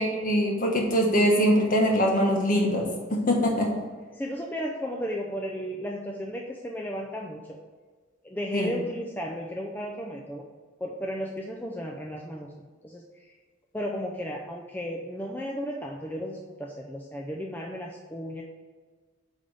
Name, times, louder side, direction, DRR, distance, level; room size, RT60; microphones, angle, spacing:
voice 1, 0.0-3.7 8.5-8.7, equal, 45° left, 0 dB, 1.5 m, -23 dB
voice 2, 4.1-7.6 8.2-10.5 10.8-13.3 13.7-18.4, equal, 10° left, -1 dB, 0.5 m, -34 dB
8.9 x 3.6 x 5.3 m, 1.4 s
head